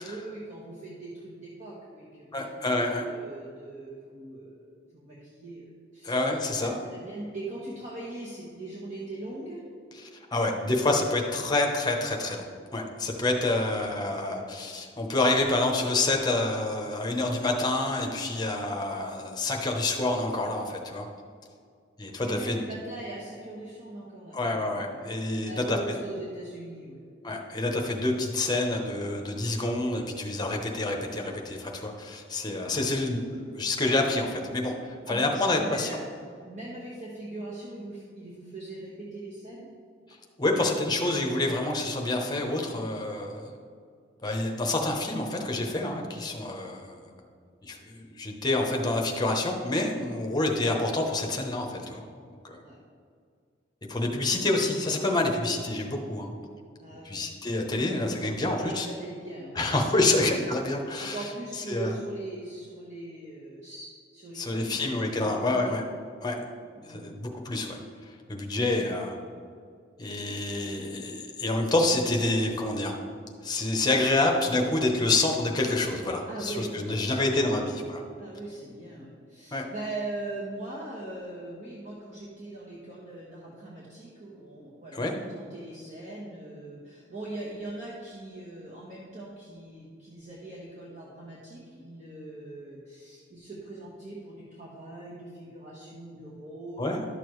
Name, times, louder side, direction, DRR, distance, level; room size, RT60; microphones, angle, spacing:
voice 1, 0.0-6.2 6.6-9.6 22.2-27.0 32.7-33.1 35.1-39.7 52.6-52.8 56.8-57.2 58.4-60.2 61.0-65.7 66.7-67.1 76.3-77.2 77.6-77.7 78.2-97.1, right 2 dB, 40° right, -5 dB, 1.2 m, -41 dB
voice 2, 2.3-3.0 6.0-6.7 10.1-12.5 12.7-21.1 22.0-22.6 24.3-25.8 27.2-36.0 40.4-43.5 44.2-47.0 47.7-52.0 52.4-52.6 53.9-56.4 57.0-58.9 59.5-61.3 61.7-62.0 64.3-65.8 66.2-66.4 66.9-67.8 68.3-69.2 70.0-72.9 73.4-78.0 79.5-79.7 84.9-85.1 96.8-97.1, left 2 dB, 20° left, 2 dB, 0.9 m, -27 dB
11.5 x 6.8 x 3.2 m, 2.2 s
head